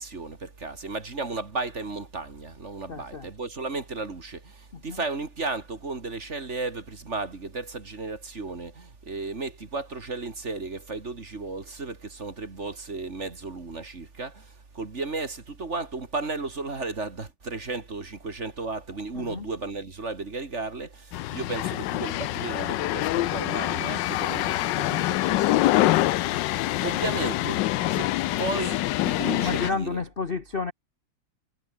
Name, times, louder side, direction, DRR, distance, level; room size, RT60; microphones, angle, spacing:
voice 1, 0.0-26.2 26.6-30.0, right 3 dB, 35° right, 2.5 m, -34 dB
voice 2, 2.9-3.3 4.7-5.0 19.1-19.5 29.4-30.7, left 4 dB, 35° left, 1.1 m, -31 dB
sound 1, 21.1-29.7, left 16 dB, 70° left, 1.1 m, -25 dB
omnidirectional pair, 2.2 m